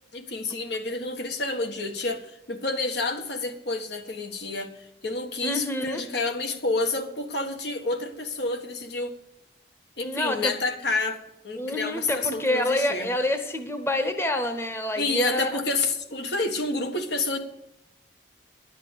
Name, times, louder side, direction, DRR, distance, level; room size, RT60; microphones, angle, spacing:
voice 1, 0.1-9.1 10.0-13.1 15.0-17.4, left 3 dB, 70° left, 5 dB, 1.5 m, -29 dB
voice 2, 5.4-6.0 10.0-10.5 11.6-15.5, left 1 dB, 15° left, 7 dB, 1.0 m, -27 dB
11.0 x 8.1 x 6.7 m, 0.84 s
head